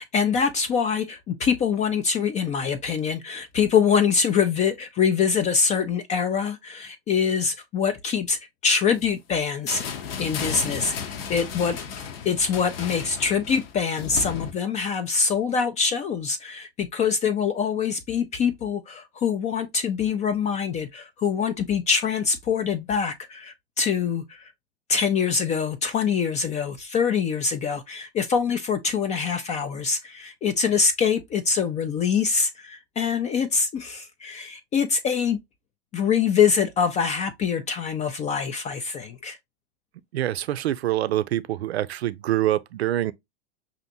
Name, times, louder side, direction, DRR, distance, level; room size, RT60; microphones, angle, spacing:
voice 1, 0.0-9.8 10.2-11.8 12.2-24.5 24.9-35.4 35.9-39.4, left 6 dB, 25° left, 0.4 m, -24 dB
sound 1, 9.7-14.5, left 7 dB, 65° left, 0.9 m, -33 dB
voice 2, 40.1-43.1, right 13 dB, 80° right, 0.5 m, -25 dB
5.6 x 2.6 x 2.6 m
hypercardioid pair, 95°, 31 cm